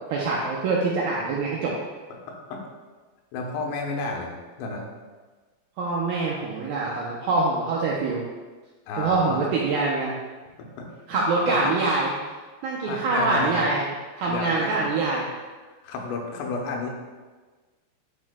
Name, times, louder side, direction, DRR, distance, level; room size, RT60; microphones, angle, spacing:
voice 1, 0.1-1.7 5.8-8.2 9.0-10.1 11.1-12.1 12.6-13.9 14.2-15.3, right 3 dB, 80° right, -3 dB, 2.1 m, -24 dB
voice 2, 2.3-2.6 3.3-4.9 8.9-9.4 10.8-10.9 11.1-11.7 12.8-13.7 14.3-14.8 15.8-16.9, left 3 dB, 90° left, 0 dB, 3.2 m, -31 dB
10.5 x 6.0 x 2.2 m, 1.4 s
omnidirectional pair, 4.9 m